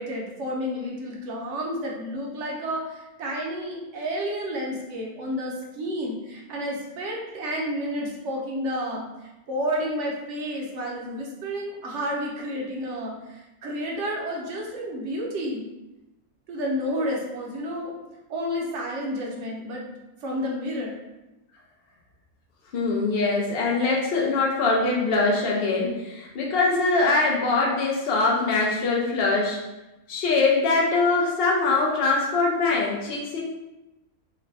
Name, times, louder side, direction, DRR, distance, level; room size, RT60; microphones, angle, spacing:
voice 1, 0.0-9.1 9.5-15.7 16.5-17.9 18.3-19.9 20.2-21.0, equal, 60° right, -2 dB, 0.9 m, -30 dB
voice 2, 22.7-29.6 30.1-33.4, left 3 dB, 75° left, -3 dB, 0.5 m, -23 dB
3.1 x 2.2 x 3.9 m, 1.0 s
omnidirectional pair, 1.7 m